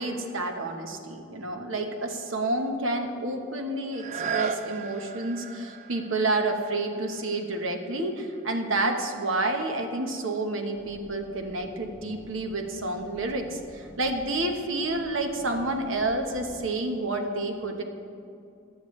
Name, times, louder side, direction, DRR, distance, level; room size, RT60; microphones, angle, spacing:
voice 1, 0.0-17.8, right 2 dB, 70° right, 4 dB, 1.1 m, -29 dB
sound 1, 3.9-9.6 10.1-10.2, right 5 dB, 40° right, 0.5 m, -37 dB
sound 2, 10.7-16.7, equal, ahead, 2.3 m, -49 dB
16.0 x 10.0 x 3.2 m, 2.5 s
head